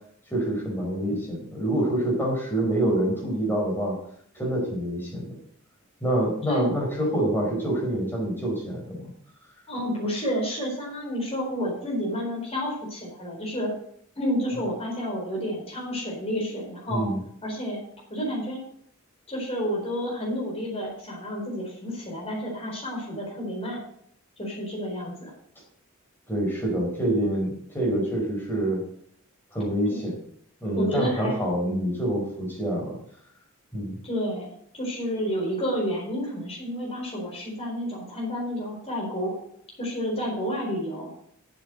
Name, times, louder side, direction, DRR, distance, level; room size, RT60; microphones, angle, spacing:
voice 1, 0.3-3.9 4.3-5.3 6.0-9.0 16.9-17.2 26.3-28.8 29.5-30.1 30.6-32.9 33.7-34.0, right 1 dB, 10° left, -2 dB, 4.6 m, -26 dB
voice 2, 9.7-13.7 14.2-17.1 17.4-17.8 18.1-18.6 19.3-23.8 24.4-25.3 29.9-30.0 30.7-31.4 34.0-34.5 34.7-39.4 39.8-41.1, equal, 30° left, -3 dB, 4.3 m, -30 dB
8.2 x 7.7 x 7.8 m, 0.67 s
head